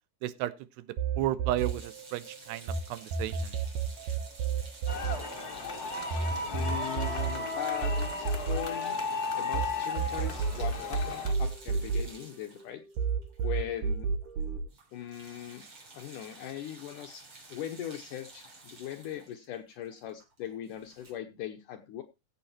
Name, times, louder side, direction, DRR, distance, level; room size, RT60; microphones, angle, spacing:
voice 1, 0.2-0.5 1.2-3.5, right 14 dB, 85° right, 2.9 m, -33 dB
sound 1, 1.0-2.8 3.1-9.7 10.0-12.6 13.0-14.6, right 5 dB, 60° right, 2.5 m, -31 dB
sound 2, 1.6-13.9 14.2-14.4 14.7-21.1, right 2 dB, 30° right, 4.1 m, -52 dB
sound 3, 4.9-11.3, left 3 dB, 50° left, 1.1 m, -35 dB
voice 2, 6.5-9.0 9.4-12.8 13.4-14.1 14.9-15.7 15.9-22.0, left 11 dB, 75° left, 1.9 m, -40 dB
15.0 x 7.2 x 4.3 m
omnidirectional pair, 4.7 m